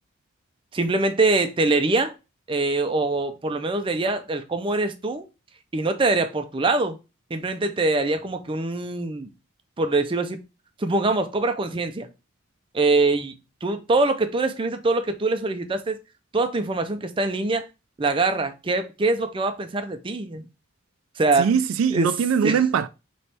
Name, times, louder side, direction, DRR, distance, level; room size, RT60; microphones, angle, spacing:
voice 1, 0.7-2.1 2.5-5.3 5.7-7.0 7.3-9.3 9.8-10.4 10.8-12.1 12.7-13.3 13.6-16.0 16.3-17.6 18.0-20.5 21.2-21.5 21.9-22.1 22.4-22.6, right 3 dB, 25° right, 0.5 m, -23 dB
voice 2, 21.4-22.9, right 7 dB, 85° right, 0.3 m, -21 dB
3.5 x 3.1 x 4.2 m
head